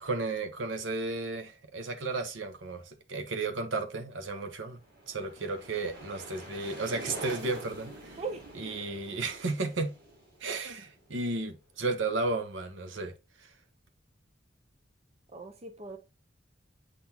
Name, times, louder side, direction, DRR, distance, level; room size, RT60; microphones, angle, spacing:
voice 1, 0.0-4.8 5.1-8.2 8.6-10.0 10.4-13.1, right 3 dB, 85° right, 1.0 m, -33 dB
sound 1, 4.7-11.4, right 1 dB, 50° right, 3.6 m, -46 dB
voice 2, 15.3-16.0, right 3 dB, 35° right, 0.8 m, -38 dB
8.3 x 3.9 x 2.9 m
head